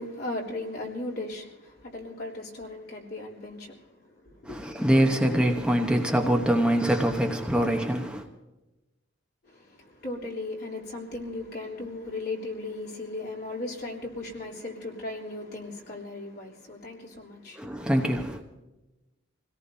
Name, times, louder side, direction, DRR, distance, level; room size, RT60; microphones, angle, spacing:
voice 1, 0.0-4.6 9.4-17.9, left 2 dB, 55° left, 3.5 m, -37 dB
voice 2, 4.4-8.2 17.6-18.4, equal, 5° right, 1.0 m, -24 dB
27.0 x 17.5 x 2.8 m
head